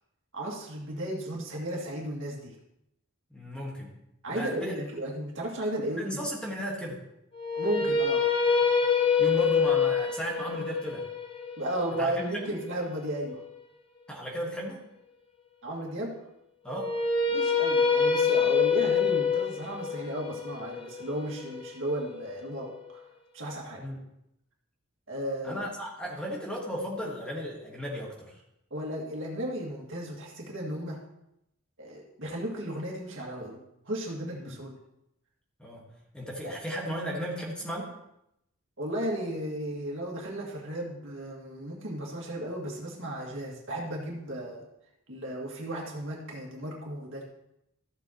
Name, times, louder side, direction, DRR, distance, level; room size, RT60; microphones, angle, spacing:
voice 1, 0.3-2.6 4.2-6.2 7.5-8.2 11.6-13.4 15.6-16.2 17.3-23.1 23.3-23.8 25.1-25.7 28.7-31.0 31.8-33.6 33.9-34.7 36.4-36.5 38.8-44.6 45.1-47.2, right 1 dB, 60° right, -2 dB, 2.1 m, -34 dB
voice 2, 3.3-3.9 4.3-4.8 6.0-7.1 9.2-11.1 12.0-12.5 14.1-14.8 16.6-16.9 23.8-24.0 25.4-28.4 34.4-34.6 35.6-37.9, equal, 5° left, -2 dB, 1.5 m, -35 dB
sound 1, 7.3-13.5 16.7-22.8, left 6 dB, 25° left, 0.7 m, -26 dB
14.0 x 7.3 x 3.0 m, 0.83 s
head